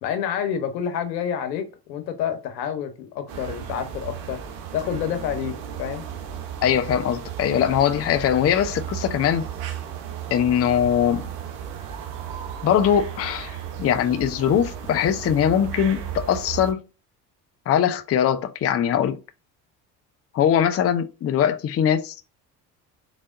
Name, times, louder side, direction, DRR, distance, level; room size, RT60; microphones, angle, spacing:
voice 1, 0.0-4.4 4.7-6.0, left 8 dB, 80° left, 0.9 m, -28 dB
sound 1, 3.3-16.7, right 9 dB, 70° right, 1.0 m, -35 dB
voice 2, 6.6-9.4 10.3-11.3 12.6-16.8 17.7-19.2 20.3-22.1, left 9 dB, 30° left, 0.5 m, -21 dB
3.9 x 3.4 x 2.4 m
hypercardioid pair, 60°, 50 cm